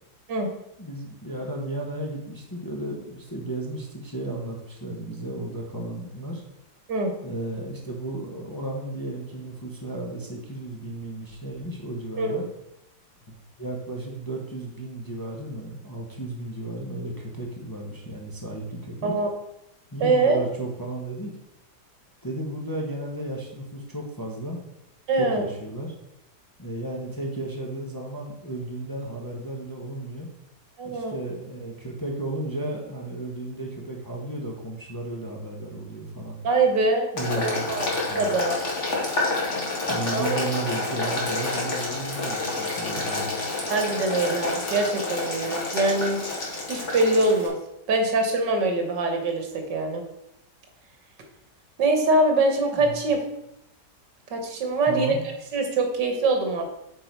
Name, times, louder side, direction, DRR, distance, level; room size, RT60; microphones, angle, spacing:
voice 1, 0.8-6.4 7.2-12.5 13.3-19.1 19.9-21.3 22.2-24.6 25.2-25.9 26.6-30.3 30.8-36.4 37.1-37.7 38.1-38.4 39.9-43.4 52.7-53.0 54.9-55.2, right 1 dB, 15° left, -1 dB, 1.0 m, -34 dB
voice 2, 20.0-20.4 25.1-25.4 30.8-31.1 36.4-37.1 37.4-38.6 40.1-40.3 43.7-46.2 46.7-47.6 47.9-50.0 51.8-53.2 54.3-55.2 55.5-56.7, right 2 dB, 80° right, 4 dB, 1.9 m, -23 dB
Boiling, 37.2-47.5, left 2 dB, 45° left, 2.1 m, -29 dB
8.7 x 4.6 x 4.6 m, 0.83 s
omnidirectional pair, 1.9 m